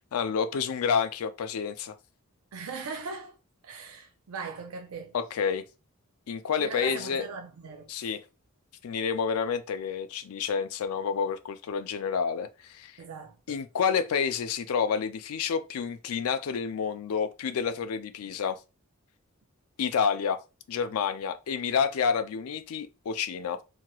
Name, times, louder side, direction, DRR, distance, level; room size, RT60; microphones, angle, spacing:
voice 1, 0.1-1.9 5.1-5.6 6.3-7.2 7.9-8.2 8.8-13.0 13.5-18.6 19.8-20.4 20.7-23.6, left 6 dB, 85° left, 0.4 m, -29 dB
voice 2, 2.5-3.4 3.6-5.2 6.6-8.1 13.0-13.6, right 4 dB, 80° right, 0.5 m, -39 dB
2.9 x 2.8 x 2.2 m
head